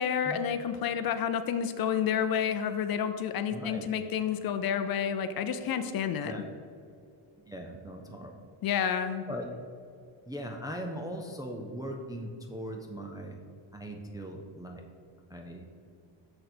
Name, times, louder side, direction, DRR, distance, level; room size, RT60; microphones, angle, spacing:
voice 1, 0.0-6.3 8.6-9.2, left 8 dB, 50° left, 9 dB, 0.5 m, -30 dB
voice 2, 3.5-3.8 6.2-6.4 7.5-8.3 9.3-9.5 10.3-13.4 13.7-14.8 15.3-15.7, equal, 10° right, 1 dB, 0.3 m, -39 dB
6.6 x 6.2 x 4.3 m, 2.4 s
cardioid pair, 160°, 47 cm